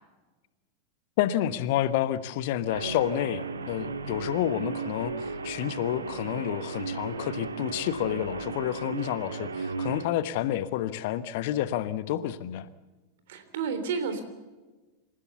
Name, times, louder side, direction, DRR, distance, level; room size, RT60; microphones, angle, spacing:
voice 1, 1.2-5.1 5.4-12.7, left 12 dB, 50° left, 14 dB, 1.1 m, -29 dB
Guitar, 2.7-10.1, right 4 dB, 70° right, 1.6 m, -35 dB
voice 2, 13.3-14.2, right 5 dB, 55° right, 9 dB, 3.5 m, -31 dB
27.5 x 15.0 x 7.0 m, 1.2 s
figure-of-eight pair, 90°, 0 cm